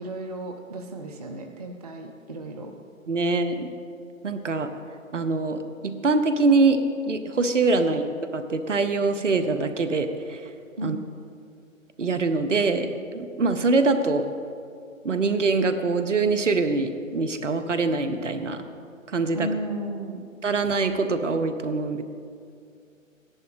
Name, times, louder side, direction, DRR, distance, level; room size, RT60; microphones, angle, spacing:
voice 1, 0.0-2.7 10.8-11.0 19.4-20.3, right 1 dB, 30° right, 3 dB, 0.5 m, -34 dB
voice 2, 3.1-3.7 4.2-4.7 5.1-6.8 7.0-8.0 8.3-10.5 10.8-11.0 12.0-14.3 15.0-18.6 19.1-19.5 20.4-22.0, right 3 dB, 60° right, 9 dB, 1.0 m, -24 dB
13.5 x 11.0 x 4.9 m, 2.4 s
figure-of-eight pair, 135°, 41 cm